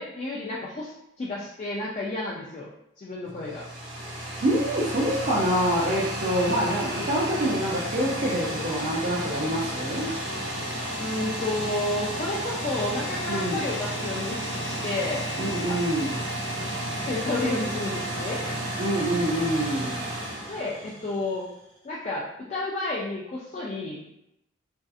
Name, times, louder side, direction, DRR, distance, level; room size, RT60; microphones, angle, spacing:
voice 1, 0.0-2.7 3.0-3.6 10.9-15.2 15.7-15.8 17.1-18.4 20.5-21.5 21.8-24.1, left 2 dB, 35° left, -5 dB, 0.3 m, -31 dB
sound 1, 3.2-21.4, equal, 80° right, 0.9 m, -32 dB
voice 2, 4.4-10.1 13.3-13.6 15.4-16.2 18.8-20.0, right 1 dB, 50° right, -7 dB, 0.5 m, -26 dB
2.6 x 2.4 x 2.4 m, 0.81 s
head